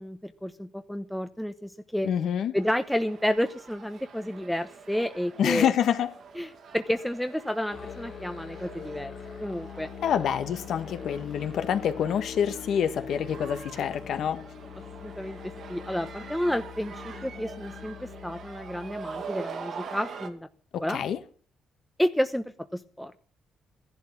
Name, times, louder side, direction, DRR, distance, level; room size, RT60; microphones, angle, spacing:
voice 1, 0.0-2.1 2.5-5.7 6.4-9.9 15.0-20.5 20.8-21.0 22.0-22.4 22.7-23.1, equal, ahead, 1.0 m, -30 dB
voice 2, 2.0-2.5 5.4-6.1 10.0-14.4 20.7-21.2, left 9 dB, 70° left, 1.5 m, -27 dB
sound 1, 2.6-20.3, right 5 dB, 60° right, 2.3 m, -44 dB
Musical instrument, 7.7-19.3, left 6 dB, 50° left, 2.0 m, -43 dB
14.5 x 11.5 x 7.4 m
cardioid pair, 90°, 0 cm